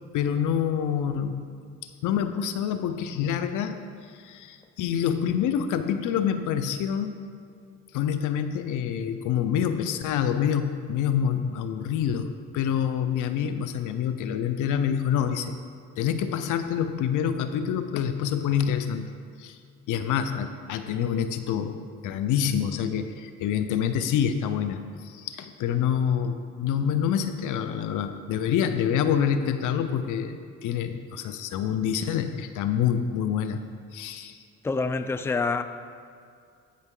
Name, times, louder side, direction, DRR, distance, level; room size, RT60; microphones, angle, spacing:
voice 1, 0.1-1.5 2.0-3.8 4.1-7.2 7.9-15.6 16.0-19.1 19.4-19.6 19.9-33.6 33.9-34.4, left 8 dB, 85° left, 0.6 m, -27 dB
voice 2, 34.6-35.6, left 3 dB, 10° left, 0.4 m, -26 dB
15.0 x 5.4 x 3.8 m
cardioid pair, 90°, 30 cm